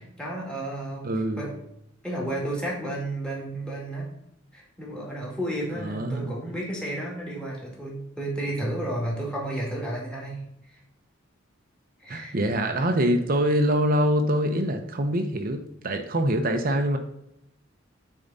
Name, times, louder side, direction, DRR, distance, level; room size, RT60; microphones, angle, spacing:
voice 1, 0.2-1.1 1.3-1.5 2.0-4.1 4.5-10.8 12.0-12.4 12.7-12.9, right 1 dB, 5° left, -3 dB, 2.4 m, -32 dB
voice 2, 1.0-1.5 5.8-6.3 12.1-17.0, equal, 45° right, 5 dB, 0.8 m, -24 dB
8.8 x 4.7 x 4.0 m, 0.80 s
head